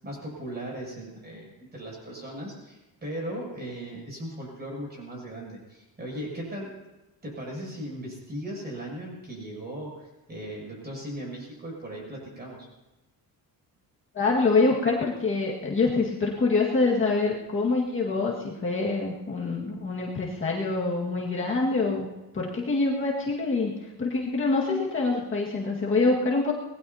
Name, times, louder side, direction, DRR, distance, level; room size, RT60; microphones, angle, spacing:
voice 1, 0.0-6.7 7.2-12.7, right 1 dB, 25° right, -3 dB, 7.3 m, -38 dB
voice 2, 14.1-22.1 22.3-26.5, left 3 dB, 30° left, -4 dB, 1.9 m, -25 dB
25.5 x 19.5 x 2.8 m, 1.0 s
cardioid pair, 170°, 38 cm